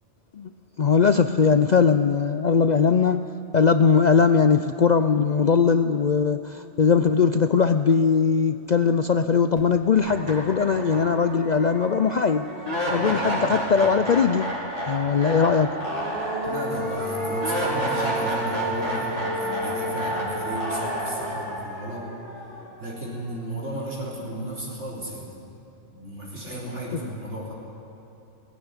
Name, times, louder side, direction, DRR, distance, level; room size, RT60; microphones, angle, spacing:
voice 1, 0.8-3.2 3.5-12.5 12.9-14.5 14.9-15.8, left 6 dB, 50° left, 10 dB, 0.5 m, -20 dB
sound 1, 9.6-9.7 10.0-23.1, equal, 30° right, 4.0 m, -29 dB
voice 2, 16.4-22.1 22.8-25.4 25.9-27.5, right 1 dB, 75° right, -4 dB, 4.4 m, -34 dB
17.5 x 15.5 x 9.8 m, 3.0 s
omnidirectional pair, 1.2 m